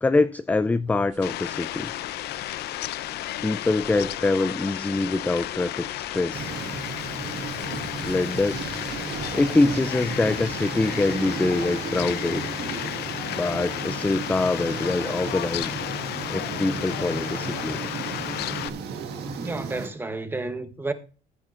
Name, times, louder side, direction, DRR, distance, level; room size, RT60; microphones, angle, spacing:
voice 1, 0.0-1.9 3.4-6.5 8.0-8.6 9.3-12.5 13.3-15.8 16.3-17.8, left 2 dB, 10° left, 0.4 m, -24 dB
sound 1, 0.7-11.1, right 4 dB, 45° right, 2.9 m, -50 dB
Fowl, 1.2-18.7, left 14 dB, 75° left, 0.6 m, -33 dB
sound 2, 6.3-19.9, right 5 dB, 75° right, 1.7 m, -34 dB
voice 2, 19.4-20.9, right 2 dB, 10° right, 1.1 m, -31 dB
15.0 x 9.7 x 2.5 m
cardioid pair, 110°, 17 cm